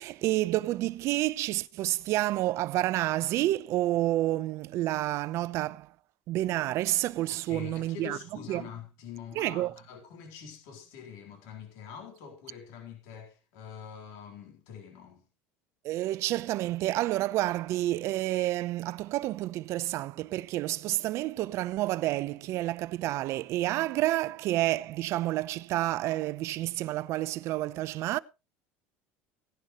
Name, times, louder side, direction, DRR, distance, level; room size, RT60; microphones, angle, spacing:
voice 1, 0.0-5.9 6.3-8.2 8.5-8.6 9.4-9.7 15.8-28.2, right 16 dB, 55° right, 0.7 m, -29 dB
voice 2, 7.3-15.2, left 8 dB, 70° left, 4.0 m, -45 dB
17.5 x 11.0 x 3.1 m
cardioid pair, 130°, 6 cm